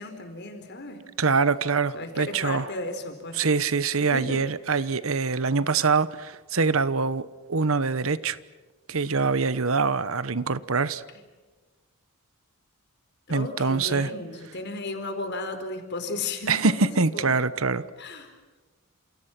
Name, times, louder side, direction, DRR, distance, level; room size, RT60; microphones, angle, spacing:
voice 1, 0.0-1.0 1.9-3.5 4.1-4.5 4.7-4.9 11.1-11.2 13.3-17.4 18.0-18.3, left 2 dB, 50° left, 4.6 m, -35 dB
voice 2, 1.2-2.7 3.4-8.4 8.9-11.0 13.3-14.1 16.5-17.8, right 4 dB, 70° right, 1.1 m, -24 dB
29.0 x 28.5 x 6.1 m
head